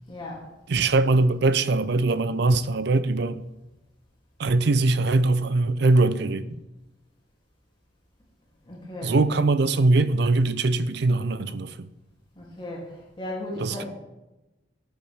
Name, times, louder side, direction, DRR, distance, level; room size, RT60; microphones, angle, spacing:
voice 1, 0.1-0.4 8.6-9.2 12.4-12.8 13.2-13.9, left 1 dB, 30° left, 2.9 m, -35 dB
voice 2, 0.7-3.4 4.4-6.5 9.0-11.8 13.6-13.8, right 2 dB, 65° right, 0.5 m, -22 dB
14.0 x 8.2 x 3.5 m
head